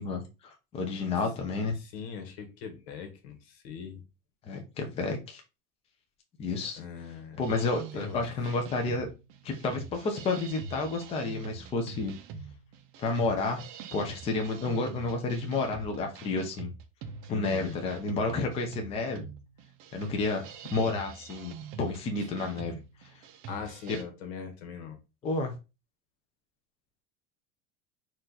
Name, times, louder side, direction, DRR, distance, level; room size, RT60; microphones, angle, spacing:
voice 1, 0.0-1.8 4.5-5.4 6.4-6.8 7.4-9.1 9.4-12.1 13.0-13.6 13.9-16.7 17.3-19.2 19.9-22.7 25.2-25.6, left 3 dB, 20° left, 0.6 m, -31 dB
voice 2, 1.7-4.0 6.7-7.4 7.9-8.2 17.3-17.8 23.5-25.0, left 7 dB, 80° left, 1.5 m, -41 dB
sound 1, 7.4-24.0, right 5 dB, 40° right, 0.6 m, -44 dB
4.4 x 2.6 x 3.9 m
cardioid pair, 175°, 31 cm